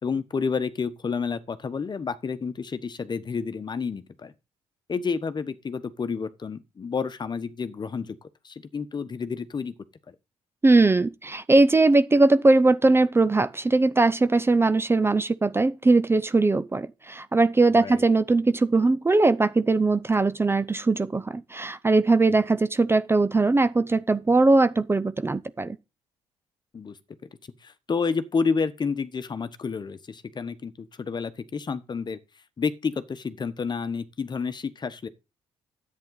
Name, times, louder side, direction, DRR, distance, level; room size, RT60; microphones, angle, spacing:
voice 1, 0.0-4.3 4.9-9.7 10.1-10.2 17.7-18.0 26.7-27.0 27.6-32.2 32.6-35.1, left 5 dB, 35° left, 1.2 m, -30 dB
voice 2, 10.6-25.8, right 3 dB, 20° right, 0.7 m, -20 dB
10.5 x 8.6 x 4.0 m
supercardioid pair, 70°, 12 cm